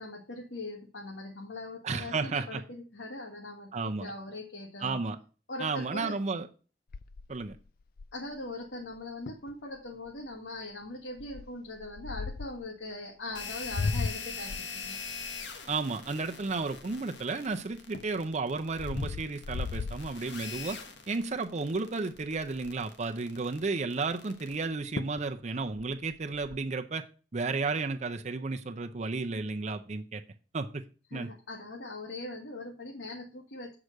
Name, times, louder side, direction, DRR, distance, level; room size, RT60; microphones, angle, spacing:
voice 1, 0.0-5.0 5.5-6.1 8.1-15.0 31.1-33.7, left 2 dB, 90° left, 0 dB, 1.8 m, -41 dB
voice 2, 1.8-2.6 3.7-4.1 4.8-5.2 5.6-6.5 7.3-7.6 15.7-20.8 21.1-27.0 27.3-30.2 30.5-30.8 31.1-31.3, right 3 dB, 40° right, 6 dB, 0.6 m, -33 dB
sound 1, 6.9-8.4 8.9-9.0 9.3-9.5 10.0-10.3 11.2-12.6 13.3-17.2 17.7-20.7 21.2-21.5 21.7-21.8 22.1-22.9 24.5-24.6 25.0-25.3 25.6-26.6, left 4 dB, 55° left, 0.4 m, -37 dB
sound 2, 13.3-24.6, left 5 dB, 70° left, 1.3 m, -43 dB
8.1 x 4.8 x 6.4 m, 0.36 s
head